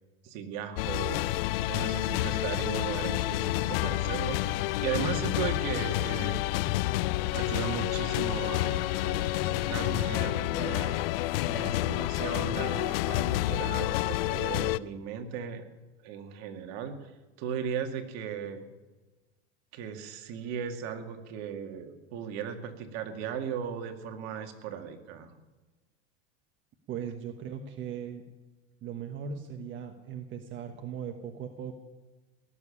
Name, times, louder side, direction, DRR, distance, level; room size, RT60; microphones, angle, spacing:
voice 1, 0.2-1.4 1.7-6.5 7.3-11.0 11.5-15.6 16.0-17.1 17.4-18.7 19.7-25.3, right 7 dB, 60° right, 6 dB, 2.2 m, -37 dB
sound 1, 0.8-14.8, left 16 dB, 70° left, 0.6 m, -29 dB
voice 2, 26.9-28.2 28.8-31.7, right 7 dB, 40° right, 5 dB, 1.4 m, -38 dB
18.0 x 7.2 x 10.0 m, 1.2 s
supercardioid pair, 110°, 30 cm